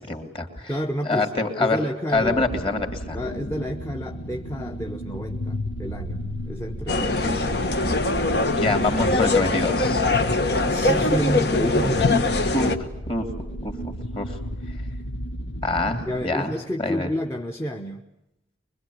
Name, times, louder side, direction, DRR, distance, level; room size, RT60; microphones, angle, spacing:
voice 1, 0.0-0.7 1.0-1.8 2.1-3.2 8.5-10.0 12.5-12.8 13.1-13.3 13.6-14.4 15.6-17.1, left 2 dB, 30° left, 5 dB, 2.9 m, -26 dB
voice 2, 0.7-2.4 3.1-8.0 10.7-12.1 16.1-18.1, equal, 15° left, 3 dB, 1.0 m, -30 dB
sound 1, 2.1-16.2, equal, 80° left, 1.3 m, -33 dB
sound 2, 6.9-12.8, left 2 dB, 55° left, 1.5 m, -22 dB
24.0 x 23.0 x 9.5 m, 0.86 s
head